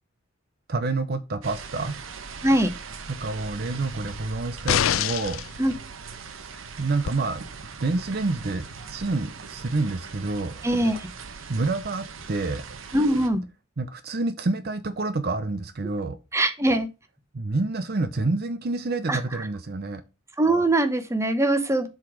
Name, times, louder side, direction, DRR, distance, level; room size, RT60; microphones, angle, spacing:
voice 1, 0.7-2.0 3.1-5.4 6.2-10.7 11.5-12.6 13.8-16.2 17.3-20.0, right 3 dB, 50° right, 0.7 m, -28 dB
sound 1, 1.4-13.3, right 4 dB, 85° right, 0.9 m, -40 dB
sound 2, 4.7-5.5 7.1-7.2, left 9 dB, 90° left, 0.5 m, -24 dB
voice 2, 10.6-11.0 12.9-13.4 16.3-16.9 19.1-19.2 20.4-21.9, right 1 dB, 15° right, 0.9 m, -22 dB
7.3 x 4.0 x 4.9 m
head